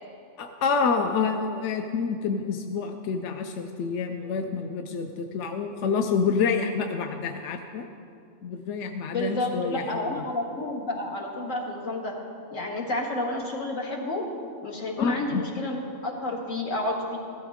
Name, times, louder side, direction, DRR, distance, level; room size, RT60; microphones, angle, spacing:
voice 1, 0.4-7.9 8.4-10.2 15.0-15.4, left 5 dB, 70° left, 5 dB, 0.9 m, -28 dB
voice 2, 9.1-12.1 12.5-14.2 14.6-17.2, left 2 dB, 90° left, -1 dB, 2.1 m, -30 dB
16.0 x 13.0 x 3.6 m, 2.5 s
omnidirectional pair, 1.3 m